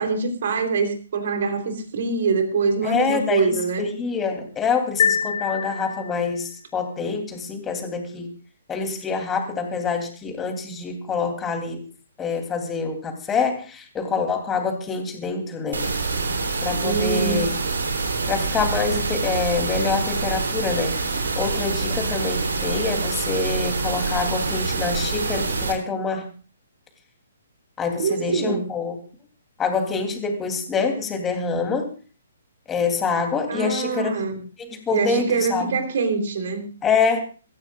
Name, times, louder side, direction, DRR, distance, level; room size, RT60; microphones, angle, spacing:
voice 1, 0.0-3.9 16.8-17.4 28.0-28.7 33.5-34.4 34.9-36.7, right 4 dB, 55° right, 5 dB, 3.6 m, -24 dB
voice 2, 2.8-8.3 8.7-11.9 12.2-15.9 16.6-17.5 18.3-21.0 21.3-26.3 27.8-28.9 29.6-31.9 32.7-34.1 34.6-35.7 36.8-37.2, left 5 dB, 15° left, 4 dB, 3.2 m, -26 dB
sound 1, 5.0-6.5, left 7 dB, 55° left, 1.2 m, -25 dB
sound 2, 15.7-25.7, right 4 dB, 70° right, 3.5 m, -26 dB
25.0 x 14.5 x 2.5 m, 0.38 s
figure-of-eight pair, 130°, 0 cm